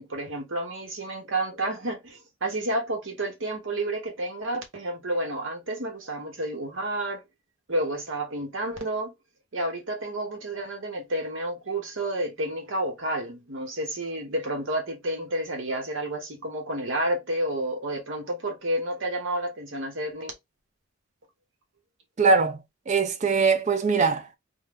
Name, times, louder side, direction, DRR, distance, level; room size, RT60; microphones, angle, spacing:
voice 1, 0.0-7.2 7.7-9.1 9.5-20.3, right 1 dB, 60° right, 1.1 m, -30 dB
voice 2, 22.2-22.6 22.9-24.4, right 4 dB, 35° right, 0.4 m, -22 dB
2.8 x 2.2 x 3.4 m
head